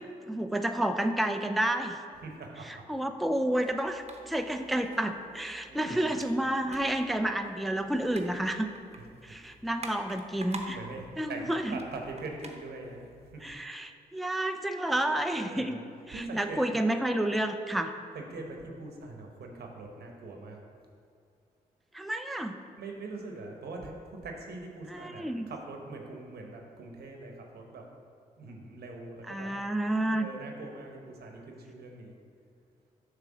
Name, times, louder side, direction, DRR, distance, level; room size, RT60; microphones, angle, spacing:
voice 1, 0.0-2.0 2.7-8.7 9.2-10.8 11.2-11.8 13.4-15.8 16.1-17.9 21.9-22.6 24.9-25.5 29.3-30.3, right 1 dB, ahead, 6 dB, 0.4 m, -30 dB
voice 2, 2.2-2.9 5.7-6.3 9.0-9.6 10.7-13.5 15.3-15.8 16.1-16.6 18.1-20.6 22.8-27.9 28.4-29.5 30.1-32.1, right 3 dB, 80° right, 2 dB, 1.0 m, -43 dB
sound 1, 3.5-13.5, right 2 dB, 40° right, 0.9 m, -49 dB
7.4 x 3.3 x 6.2 m, 2.4 s
supercardioid pair, 50°, 16 cm